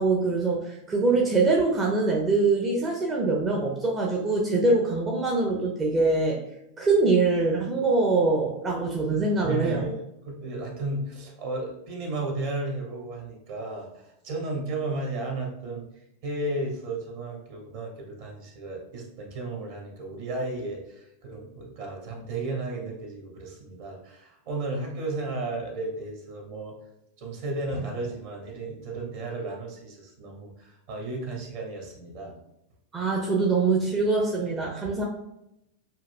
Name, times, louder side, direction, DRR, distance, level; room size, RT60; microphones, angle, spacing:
voice 1, 0.0-6.4 6.8-9.8 32.9-35.0, right 3 dB, 20° right, -2 dB, 0.7 m, -23 dB
voice 2, 9.4-15.9 16.2-26.8 27.2-32.3, right 2 dB, 50° right, 1 dB, 1.3 m, -34 dB
7.4 x 2.6 x 2.2 m, 0.85 s
figure-of-eight pair, 90°, 0 cm